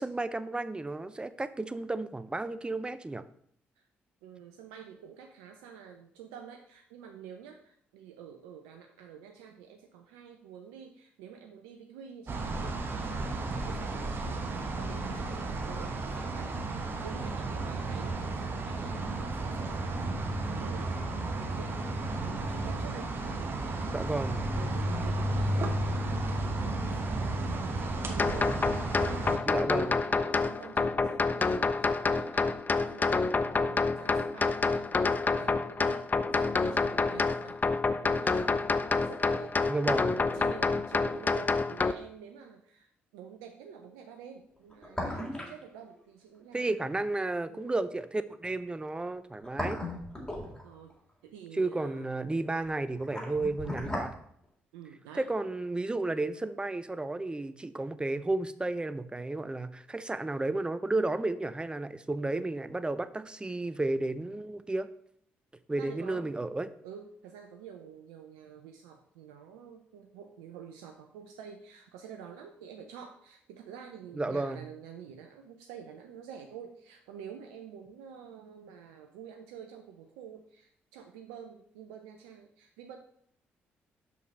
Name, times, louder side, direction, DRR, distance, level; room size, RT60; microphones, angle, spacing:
voice 1, 0.0-3.2 23.9-24.5 29.4-30.0 39.7-40.3 46.5-49.8 51.5-54.1 55.2-64.9 65.7-66.7 74.2-74.7, right 2 dB, 15° right, 13 dB, 0.7 m, -32 dB
voice 2, 4.2-20.1 20.6-21.8 22.2-28.5 28.8-35.0 35.4-38.7 39.0-40.0 40.3-46.8 47.5-47.8 50.6-50.9 51.2-52.1 54.7-55.3 65.8-66.3 66.8-83.0, right 7 dB, 75° right, 4 dB, 0.6 m, -49 dB
sound 1, 12.3-29.4, right 2 dB, 40° right, 1.2 m, -33 dB
sound 2, 28.2-41.9, left 4 dB, 30° left, 0.5 m, -28 dB
sound 3, 44.6-45.6 45.9-46.0 49.1-50.9 52.6-54.1 54.4-54.5, left 1 dB, 15° left, 3.6 m, -36 dB
6.5 x 5.5 x 5.5 m, 0.67 s
hypercardioid pair, 45°, 6 cm